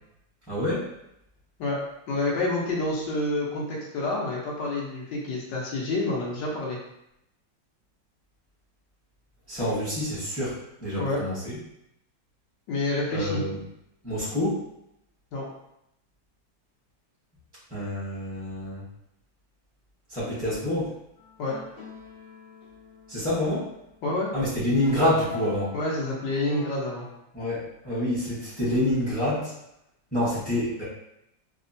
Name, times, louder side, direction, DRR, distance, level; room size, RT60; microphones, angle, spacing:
voice 1, 0.5-0.9 9.5-11.6 13.1-13.6 14.0-14.6 17.7-18.9 20.1-20.9 23.1-23.7 24.3-25.7 27.3-29.5 30.1-30.8, left 1 dB, 5° left, -10 dB, 0.6 m, -27 dB
voice 2, 2.1-6.8 11.0-11.2 12.7-13.4 15.3-15.5 21.4-21.5 24.0-24.3 25.7-27.1, left 2 dB, 75° left, -3 dB, 1.3 m, -28 dB
sound 1, 21.2-27.2, left 4 dB, 45° left, 1.0 m, -46 dB
3.4 x 2.1 x 2.6 m, 0.80 s
omnidirectional pair, 2.0 m